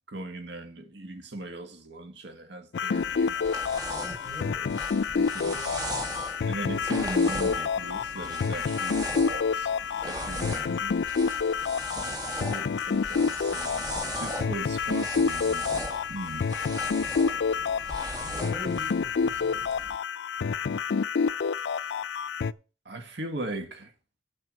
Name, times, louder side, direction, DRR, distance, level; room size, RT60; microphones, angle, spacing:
voice 1, 0.1-4.1 5.0-5.8 6.4-9.7 10.0-11.0 11.8-13.9 14.2-15.7 16.1-16.4 22.8-23.9, right 2 dB, 80° right, 1.8 m, -39 dB
sound 1, 2.7-22.5, left 5 dB, 70° left, 0.4 m, -28 dB
sound 2, 2.9-20.0, right 1 dB, 20° right, 2.2 m, -39 dB
voice 2, 4.0-4.9 5.1-6.3 17.6-17.7 18.2-19.7, right 1 dB, 5° left, 4.7 m, -44 dB
9.4 x 5.8 x 7.5 m
head